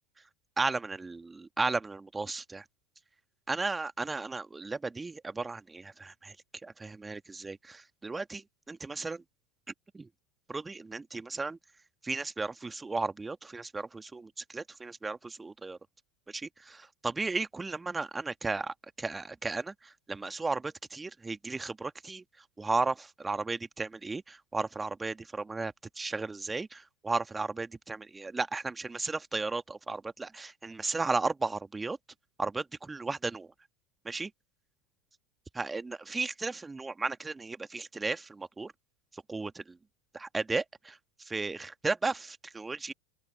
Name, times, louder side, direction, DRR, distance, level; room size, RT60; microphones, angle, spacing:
voice 1, 0.6-2.7 3.5-6.4 6.6-9.2 9.9-10.1 10.5-11.6 12.0-15.8 16.3-32.0 32.4-33.5 34.0-34.3 35.5-38.7 39.1-39.8 40.1-42.9, right 3 dB, 15° right, 1.8 m, -35 dB
open air
figure-of-eight pair, 80°, 0 cm